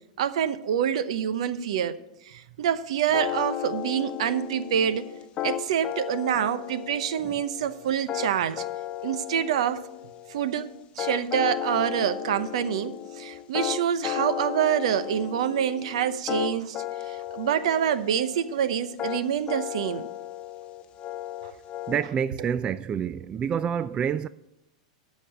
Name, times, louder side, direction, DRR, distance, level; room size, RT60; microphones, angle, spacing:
voice 1, 0.2-2.0 2.2-5.1 5.4-8.7 9.0-9.9 10.3-20.1 22.4-22.5, right 9 dB, 70° right, 0.8 m, -26 dB
sound 1, 3.1-22.0, left 12 dB, 35° left, 1.1 m, -35 dB
voice 2, 21.9-24.3, right 8 dB, 25° right, 0.3 m, -28 dB
13.0 x 5.3 x 7.5 m
hypercardioid pair, 105°, 3 cm